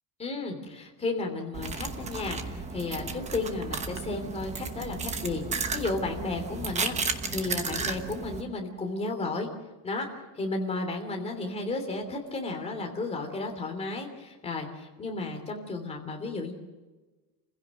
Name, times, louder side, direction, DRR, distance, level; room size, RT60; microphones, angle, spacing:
voice 1, 0.2-9.5 9.8-10.1 10.3-16.5, left 3 dB, 15° left, 2 dB, 3.1 m, -33 dB
sound 1, 1.5-8.4, right 4 dB, 15° right, 1.0 m, -34 dB
29.5 x 16.0 x 6.4 m, 1.2 s
cardioid pair, 180°, 43 cm